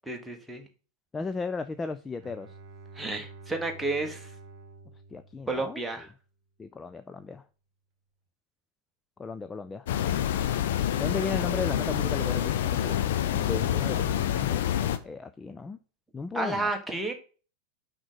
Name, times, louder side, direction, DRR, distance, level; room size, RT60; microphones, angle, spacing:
voice 1, 0.1-0.6 2.9-4.3 5.5-6.1 16.3-17.1, right 2 dB, 5° right, 1.5 m, -31 dB
voice 2, 1.1-2.5 5.1-5.8 6.6-7.4 9.2-9.9 11.0-13.0 13.3-14.6 15.0-15.8 16.1-16.7, left 4 dB, 15° left, 0.4 m, -35 dB
Bowed string instrument, 2.2-6.1, right 3 dB, 40° right, 1.2 m, -49 dB
sound 1, 9.9-15.0, left 11 dB, 55° left, 0.7 m, -27 dB
6.1 x 5.2 x 6.3 m
figure-of-eight pair, 90°, 0 cm